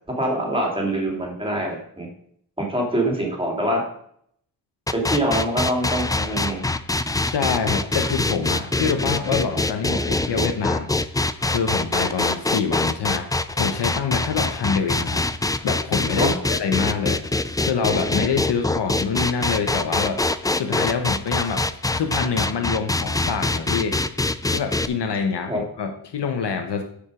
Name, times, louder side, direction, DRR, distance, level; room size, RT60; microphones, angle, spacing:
voice 1, 0.1-2.1 2.6-3.8 4.9-6.6 16.2-16.3 25.5-25.6, right 1 dB, 15° right, -1 dB, 2.9 m, -24 dB
sound 1, 4.9-24.9, left 2 dB, 10° left, 0.3 m, -24 dB
voice 2, 7.2-10.9 11.4-15.3 15.6-17.2 17.6-20.2 20.6-21.6 21.9-24.0 24.5-26.8, left 6 dB, 85° left, 5 dB, 1.2 m, -26 dB
12.5 x 5.2 x 5.0 m, 0.67 s
wide cardioid pair, 130°, 40 cm